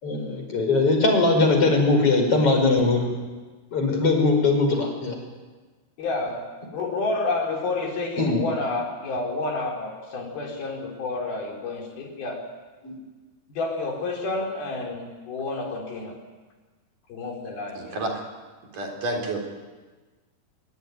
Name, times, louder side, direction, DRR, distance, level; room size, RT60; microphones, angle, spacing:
voice 1, 0.0-3.0 3.7-5.1 8.2-8.4 12.8-12.9, left 3 dB, 35° left, 4 dB, 6.0 m, -20 dB
voice 2, 6.0-6.4 6.7-12.4 13.5-16.2 17.1-18.0, left 3 dB, 65° left, 1 dB, 5.5 m, -29 dB
voice 3, 17.8-18.2 18.7-19.4, right 2 dB, 55° right, 2 dB, 5.2 m, -29 dB
26.0 x 22.5 x 9.8 m, 1.3 s
omnidirectional pair, 4.6 m